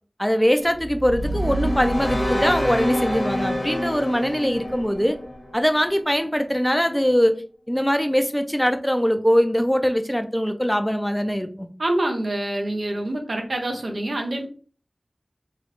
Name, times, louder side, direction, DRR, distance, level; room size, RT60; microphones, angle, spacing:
voice 1, 0.2-5.2 5.5-7.4 7.7-11.7, equal, 5° left, 7 dB, 0.4 m, -22 dB
sound 1, 0.7-6.0, equal, 55° left, 1.1 m, -27 dB
voice 2, 11.8-14.5, right 1 dB, 75° right, 3 dB, 0.5 m, -26 dB
3.1 x 2.4 x 3.0 m, 0.40 s
wide cardioid pair, 45°, 0 cm